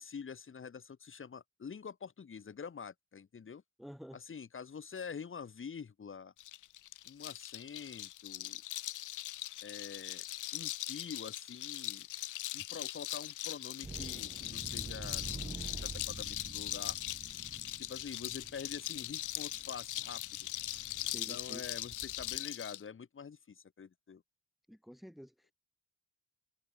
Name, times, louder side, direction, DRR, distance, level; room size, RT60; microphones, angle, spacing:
voice 1, 0.0-3.6 4.1-6.3 7.0-8.6 9.6-10.2 10.5-12.1 12.5-17.0 17.8-20.5 21.1-24.2, left 6 dB, 40° left, 6.3 m, -46 dB
voice 2, 3.8-4.2 21.0-21.7 24.7-25.5, equal, ahead, 1.8 m, -50 dB
sound 1, 6.4-22.8, left 15 dB, 80° left, 2.0 m, -40 dB
sound 2, 13.8-22.4, right 3 dB, 20° right, 2.1 m, -48 dB
cardioid pair, 90°, 30 cm